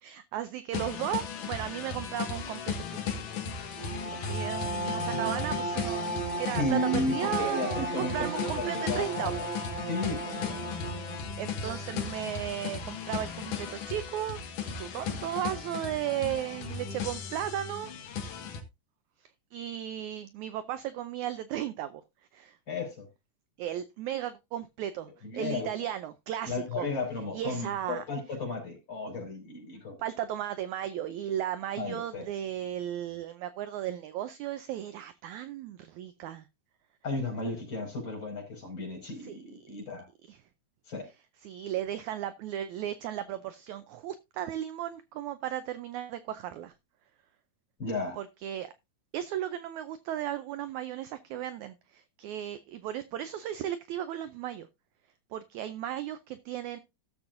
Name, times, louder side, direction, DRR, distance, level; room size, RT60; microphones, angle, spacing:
voice 1, 0.0-3.0 3.5-9.3 11.4-14.4 14.7-17.9 19.2-22.0 22.3-22.6 23.6-26.9 27.3-28.0 30.0-36.5 39.2-39.7 40.2-40.4 41.4-46.7 48.2-48.7 49.1-54.7 55.3-56.8, right 11 dB, 80° right, 1.7 m, -35 dB
sound 1, 0.7-18.6, left 6 dB, 65° left, 2.9 m, -36 dB
Bowed string instrument, 3.7-11.3, right 2 dB, 30° right, 5.0 m, -35 dB
voice 2, 6.6-9.4 9.9-10.6 22.7-23.1 25.3-25.7 26.5-30.0 31.8-32.2 37.0-40.1 40.9-41.1 47.8-48.2, left 2 dB, 30° left, 5.8 m, -34 dB
16.5 x 7.1 x 2.6 m
omnidirectional pair, 4.1 m